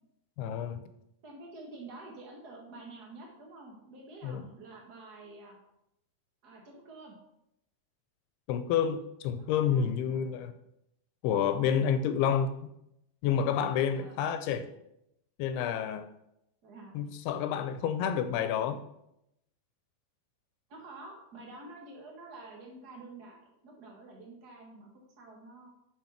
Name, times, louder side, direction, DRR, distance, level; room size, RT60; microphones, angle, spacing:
voice 1, 0.4-0.8 4.2-4.4 8.5-10.5 11.2-12.5 13.2-14.7 15.4-16.1 16.9-18.8, left 8 dB, 85° left, 10 dB, 2.6 m, -29 dB
voice 2, 1.2-5.6 6.4-7.1 9.4-10.3 14.0-14.2 16.6-16.9 20.7-25.7, right 2 dB, 80° right, -1 dB, 0.9 m, -49 dB
6.9 x 6.4 x 5.8 m, 0.81 s
omnidirectional pair, 4.5 m